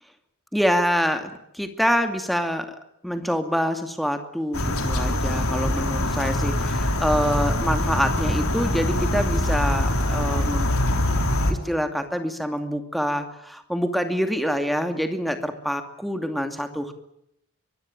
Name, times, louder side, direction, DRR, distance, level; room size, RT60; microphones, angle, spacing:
voice 1, 0.5-2.7 3.0-10.7 11.5-16.9, equal, ahead, 7 dB, 2.5 m, -26 dB
sound 1, 4.5-11.5, left 1 dB, 70° left, 4.1 m, -23 dB
24.0 x 22.5 x 9.0 m, 0.76 s
head